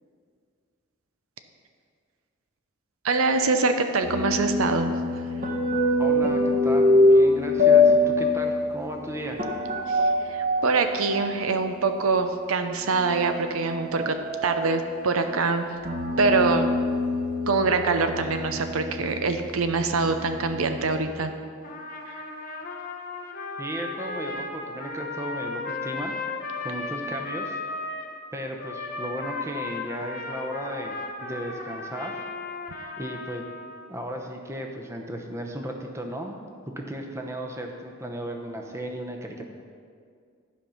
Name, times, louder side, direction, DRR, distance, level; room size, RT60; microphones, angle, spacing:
voice 1, 3.0-4.9 9.9-10.0 10.3-14.2 14.4-15.7 16.2-16.7 17.5-21.3, right 4 dB, 85° right, 7 dB, 0.6 m, -24 dB
sound 1, 4.0-12.3 12.9-21.0, left 2 dB, 40° right, 1.2 m, -24 dB
voice 2, 6.0-9.4 23.6-26.1 26.6-27.6 28.3-30.9 31.2-32.2 33.0-33.4 33.9-39.5, right 1 dB, 15° right, 3 dB, 0.7 m, -35 dB
Trumpet, 21.6-28.1 28.6-33.9, left 3 dB, 40° left, 0.9 m, -35 dB
12.0 x 5.2 x 5.6 m, 2.1 s
head